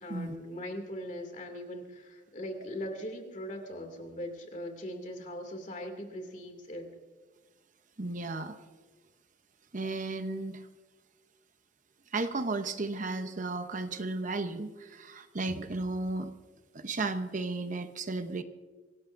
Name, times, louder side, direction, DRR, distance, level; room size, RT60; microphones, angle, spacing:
voice 1, 0.0-6.9, equal, 40° left, 4 dB, 2.5 m, -40 dB
voice 2, 8.0-8.6 9.7-10.7 12.1-16.3 16.7-18.4, right 3 dB, 40° right, 8 dB, 0.8 m, -34 dB
25.0 x 17.5 x 2.6 m, 1.4 s
head